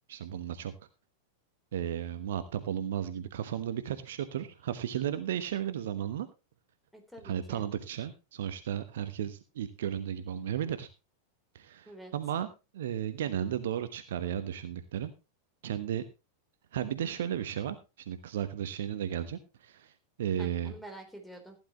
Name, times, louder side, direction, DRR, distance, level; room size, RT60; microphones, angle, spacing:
voice 1, 0.1-0.7 1.7-6.3 7.2-10.9 11.5-12.5 12.7-15.1 15.6-16.0 16.7-17.8 18.1-19.9 20.2-20.7, right 10 dB, 60° right, 11 dB, 1.1 m, -34 dB
voice 2, 6.9-7.6 11.9-12.1 20.4-21.6, right 1 dB, 5° left, 4 dB, 3.7 m, -48 dB
15.5 x 10.5 x 3.1 m, 0.28 s
figure-of-eight pair, 90°, 0 cm